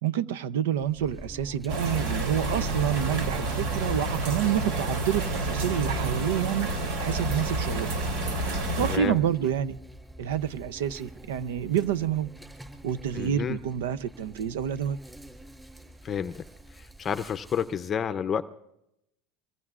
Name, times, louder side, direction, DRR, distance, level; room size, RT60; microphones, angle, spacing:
voice 1, 0.0-6.7 7.0-8.0 8.4-9.8 10.2-12.3 12.8-15.0, right 10 dB, 85° right, 0.6 m, -28 dB
Insect, 0.7-17.8, right 1 dB, 10° right, 6.2 m, -46 dB
sound 1, 1.7-9.0, right 2 dB, 70° right, 2.9 m, -29 dB
voice 2, 8.8-9.2 13.1-13.6 16.0-16.4 16.7-18.4, left 7 dB, 30° left, 0.6 m, -30 dB
26.5 x 22.5 x 2.5 m
supercardioid pair, 110°, 0 cm